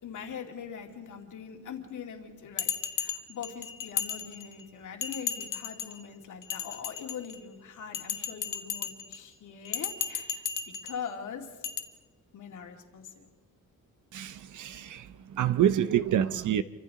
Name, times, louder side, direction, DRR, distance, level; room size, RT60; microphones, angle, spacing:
voice 1, 0.0-10.4 10.8-11.5 12.3-13.3, left 7 dB, 70° left, 2 dB, 2.5 m, -42 dB
Bell, 2.6-4.6 5.0-6.0 6.4-7.4 7.9-9.2 9.7-11.0 11.6-11.8, left 8 dB, 90° left, 1.2 m, -34 dB
voice 2, 14.1-16.6, right 10 dB, 70° right, 14 dB, 0.7 m, -27 dB
29.0 x 25.0 x 3.8 m, 1.3 s
wide cardioid pair, 165°, 31 cm